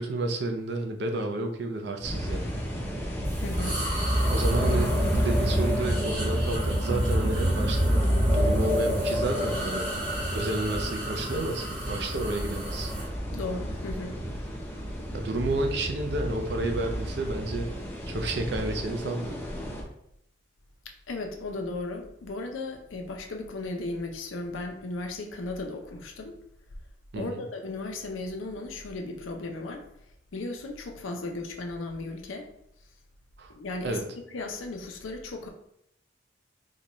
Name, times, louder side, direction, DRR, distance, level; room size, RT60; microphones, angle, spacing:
voice 1, 0.0-2.5 4.3-8.0 8.3-9.9 10.3-12.9 15.1-17.7 18.1-19.4 27.1-27.4 33.4-33.5 33.8-34.0, right 2 dB, 60° right, 3 dB, 0.5 m, -31 dB
sound 1, 2.0-19.8, equal, 10° left, 0.5 m, -34 dB
sound 2, 3.2-13.1, equal, 20° right, 1.2 m, -27 dB
voice 2, 3.4-3.8 13.3-14.2 21.1-26.4 27.2-29.8 30.3-32.5 33.5-34.0 34.3-35.5, left 2 dB, 90° left, 3 dB, 0.5 m, -35 dB
4.0 x 2.3 x 3.0 m, 0.76 s
head